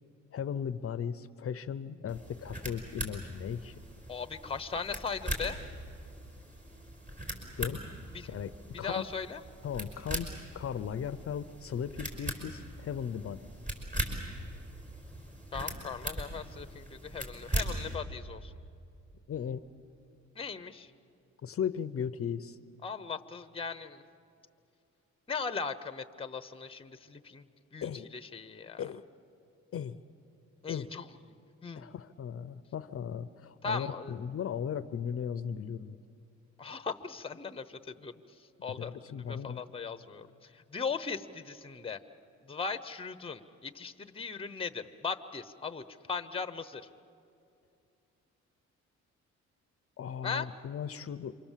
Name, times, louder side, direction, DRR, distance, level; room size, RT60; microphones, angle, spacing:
voice 1, 0.3-3.7 7.6-7.8 8.3-8.5 8.8-9.1 9.6-10.3 10.5-13.4 19.3-19.6 21.4-22.6 27.8-28.1 28.8-29.0 29.7-30.0 30.7-30.9 31.8-36.0 38.7-39.6 50.0-51.4, left 8 dB, 50° left, 13 dB, 0.7 m, -37 dB
sound 1, 2.1-17.9, right 1 dB, 25° right, 5.3 m, -40 dB
voice 2, 4.1-5.6 8.1-8.3 8.7-9.4 15.5-18.5 20.3-20.9 22.8-24.0 25.3-27.4 27.7-27.9 28.1-28.8 30.6-31.1 31.6-31.9 33.6-34.2 36.6-38.1 38.6-42.0 42.5-46.8 50.2-50.5, left 5 dB, 20° left, 11 dB, 0.9 m, -38 dB
27.5 x 24.0 x 7.4 m, 2.6 s
cardioid pair, 90°, 30 cm